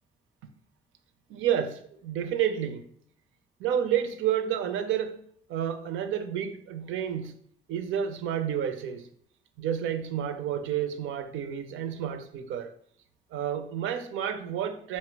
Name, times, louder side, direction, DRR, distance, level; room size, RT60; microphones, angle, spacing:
voice 1, 1.3-2.9 3.6-5.2 5.5-7.3 7.7-9.1 9.6-12.7 13.3-15.0, right 9 dB, 80° right, 0.5 m, -30 dB
4.4 x 2.1 x 4.4 m
cardioid pair, 90°, 20 cm